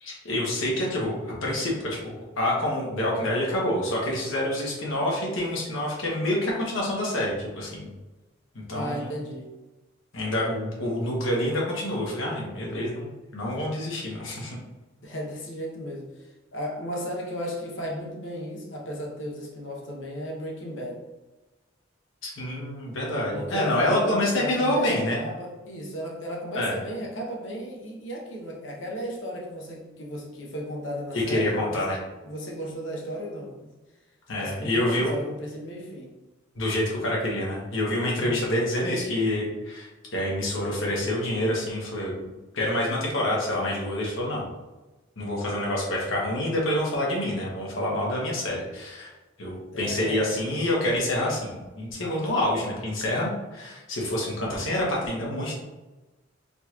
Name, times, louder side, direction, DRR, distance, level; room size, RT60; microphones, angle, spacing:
voice 1, 0.0-7.8 8.7-9.2 10.1-14.6 22.2-25.2 26.5-26.8 31.1-32.0 34.3-35.1 36.5-44.5 45.2-49.1 49.4-55.6, left 1 dB, 90° left, -3 dB, 1.2 m, -27 dB
voice 2, 8.7-9.5 15.0-21.0 23.3-31.9 32.2-33.5 34.3-36.2 38.2-38.5 49.7-50.2, equal, 70° left, -1 dB, 0.9 m, -35 dB
3.8 x 3.0 x 2.4 m, 1.1 s
head